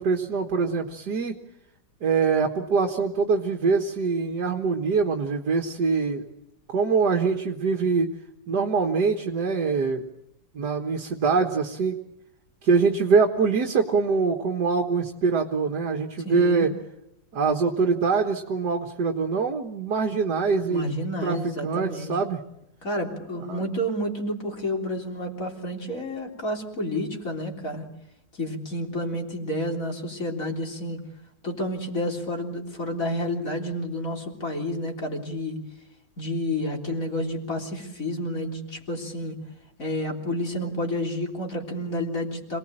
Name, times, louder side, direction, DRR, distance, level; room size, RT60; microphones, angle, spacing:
voice 1, 0.0-1.3 2.0-6.3 6.7-8.1 8.5-10.0 10.5-12.0 12.6-16.7 17.3-20.9 21.2-21.4 21.6-22.4 23.5-23.6, right 5 dB, 65° right, 4 dB, 2.0 m, -24 dB
voice 2, 16.2-16.7 20.7-22.2 22.8-27.9 28.3-31.0 31.4-35.6 36.2-39.4 39.8-42.6, left 1 dB, 45° left, 2 dB, 4.0 m, -30 dB
27.0 x 19.5 x 8.8 m, 0.86 s
omnidirectional pair, 1.9 m